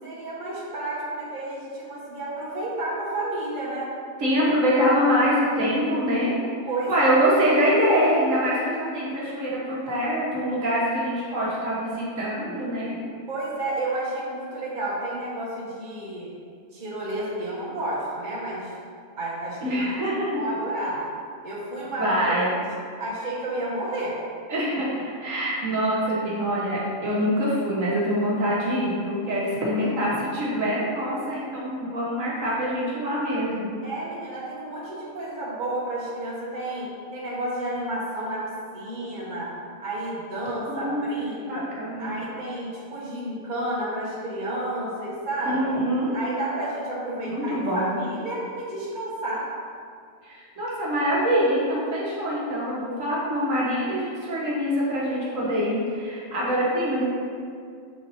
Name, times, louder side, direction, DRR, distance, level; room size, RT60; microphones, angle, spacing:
voice 1, 0.0-3.9 6.7-6.9 13.3-16.3 16.7-18.7 19.2-20.0 20.3-21.0 21.4-22.5 23.0-24.2 33.8-39.5 39.8-41.6 42.0-45.6 46.1-49.5, right 1 dB, 35° right, -7 dB, 1.4 m, -31 dB
voice 2, 4.2-6.3 6.9-13.0 19.6-20.4 22.0-22.5 24.5-24.9 25.2-33.7 40.7-41.1 41.4-42.1 45.4-46.1 47.2-48.0 50.2-57.0, equal, 70° right, -7 dB, 1.6 m, -24 dB
7.4 x 4.0 x 4.1 m, 2.2 s
omnidirectional pair, 1.4 m